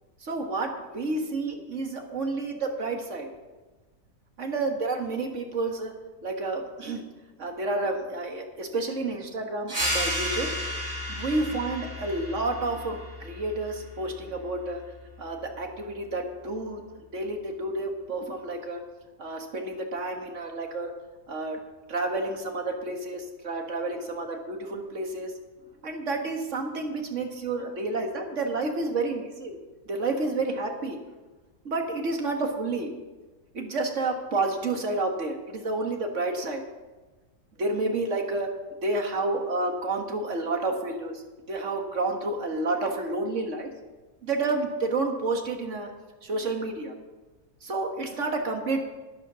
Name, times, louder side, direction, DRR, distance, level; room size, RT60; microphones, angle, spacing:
voice 1, 0.2-3.3 4.4-5.9 6.2-7.0 7.4-10.5 11.1-14.8 15.2-16.8 17.1-18.8 19.2-20.9 21.3-21.6 21.9-25.3 25.8-29.6 29.9-31.0 31.7-32.9 33.5-36.6 37.6-38.5 38.8-41.2 41.5-43.7 44.2-45.9 46.2-46.9 47.6-48.8, right 2 dB, 45° right, 4 dB, 1.9 m, -30 dB
sound 1, 9.7-14.8, equal, 30° right, 2.8 m, -33 dB
12.0 x 10.5 x 6.2 m, 1.2 s
omnidirectional pair, 1.8 m